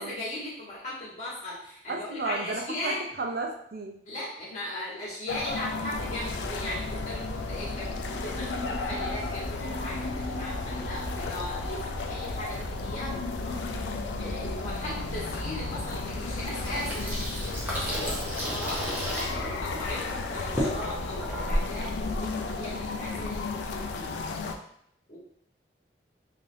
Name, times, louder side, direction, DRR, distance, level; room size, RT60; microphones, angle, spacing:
voice 1, 0.0-3.0 4.0-13.1 13.4-18.9 19.4-24.2 25.1-25.2, left 1 dB, 45° left, -8 dB, 1.3 m, -38 dB
voice 2, 1.9-4.0, right 3 dB, 55° right, 2 dB, 0.4 m, -34 dB
sound 1, 5.3-24.6, left 4 dB, 85° left, 0.3 m, -34 dB
sound 2, 5.9-18.2, equal, 75° right, 0.8 m, -38 dB
Water tap faucet / Sink (filling or washing), 16.6-23.1, equal, 10° right, 0.7 m, -33 dB
3.2 x 2.5 x 2.6 m, 0.69 s
head